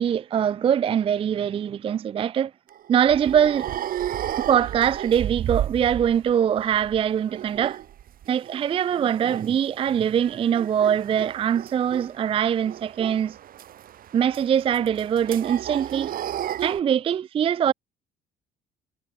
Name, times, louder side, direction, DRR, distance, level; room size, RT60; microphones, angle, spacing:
voice 1, 0.0-2.5 2.9-3.7 4.5-7.8 8.3-13.4 14.1-16.1 16.6-17.7, right 9 dB, 35° right, 0.4 m, -22 dB
sound 1, 2.7-6.3 6.6-8.6 8.9-9.5 9.9-16.8, right 11 dB, 60° right, 2.5 m, -33 dB
cardioid pair, 110°, 17 cm